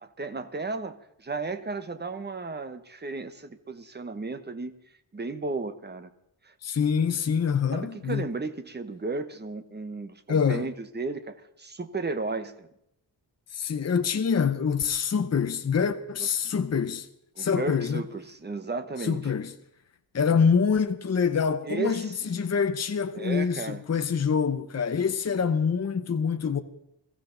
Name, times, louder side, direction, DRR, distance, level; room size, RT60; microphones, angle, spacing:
voice 1, 0.0-4.7 5.1-6.1 6.4-6.5 7.7-12.7 16.2-16.3 17.3-19.2 21.6-22.2 23.1-23.8, right 3 dB, 25° right, 1.0 m, -34 dB
voice 2, 6.6-8.3 10.3-10.7 13.5-17.1 17.4-18.0 19.0-19.5 20.1-26.6, left 6 dB, 40° left, 0.8 m, -25 dB
22.0 x 15.0 x 3.9 m
wide cardioid pair, 180°, 42 cm